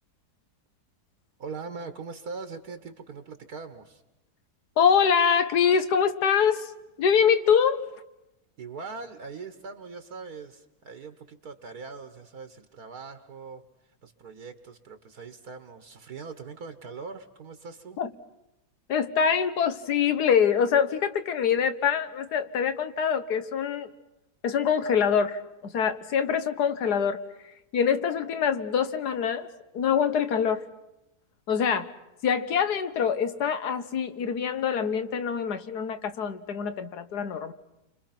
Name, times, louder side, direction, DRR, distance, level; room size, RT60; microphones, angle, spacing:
voice 1, 1.4-4.0 8.6-13.6 14.0-18.0, right 4 dB, 65° right, 9 dB, 1.8 m, -41 dB
voice 2, 4.8-6.7 7.0-7.8 18.0-18.1 18.9-23.9 24.4-27.2 27.7-29.5 29.7-30.7 31.5-31.9 32.2-37.5, left 7 dB, 75° left, 11 dB, 1.6 m, -24 dB
30.0 x 25.5 x 5.9 m, 0.93 s
omnidirectional pair, 1.8 m